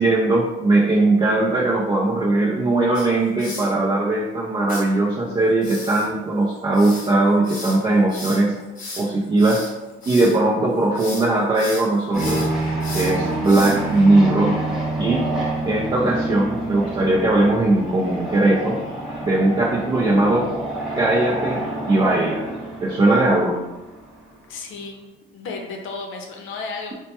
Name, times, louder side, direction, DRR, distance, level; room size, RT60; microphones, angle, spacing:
voice 1, 0.0-8.6 9.0-9.7 10.1-12.5 12.9-14.5 15.0-15.2 15.7-18.8 19.2-20.5 20.9-21.6 21.9-22.5 22.8-23.6, right 2 dB, 25° right, -4 dB, 0.4 m, -19 dB
sound 1, 2.9-3.7 4.7-4.8 5.6-10.4 10.8-11.3 11.5-14.0, left 2 dB, 45° left, 1.0 m, -35 dB
sound 2, 12.1-24.2, right 2 dB, ahead, 0.9 m, -27 dB
voice 2, 24.5-25.0 25.3-26.9, left 4 dB, 75° left, 2 dB, 0.6 m, -33 dB
4.2 x 2.2 x 2.8 m, 1.0 s
cardioid pair, 145°, 21 cm